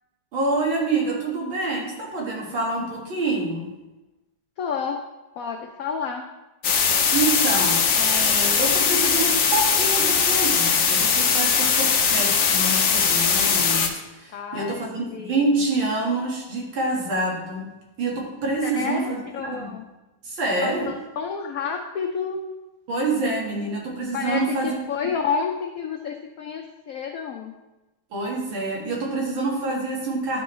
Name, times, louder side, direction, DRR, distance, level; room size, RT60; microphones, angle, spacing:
voice 1, 0.3-3.7 7.1-13.9 14.1-17.7 18.0-19.7 20.2-20.9 22.9-24.8 28.1-30.4, right 2 dB, 85° right, -3 dB, 2.4 m, -26 dB
voice 2, 4.6-5.0 5.4-6.3 14.3-14.8 15.1-15.6 18.6-19.9 20.6-22.4 24.1-27.5, left 6 dB, 90° left, 4 dB, 0.7 m, -30 dB
sound 1, 6.6-13.9, left 6 dB, 60° left, 0.9 m, -20 dB
11.0 x 4.5 x 3.1 m, 1.0 s
omnidirectional pair, 2.1 m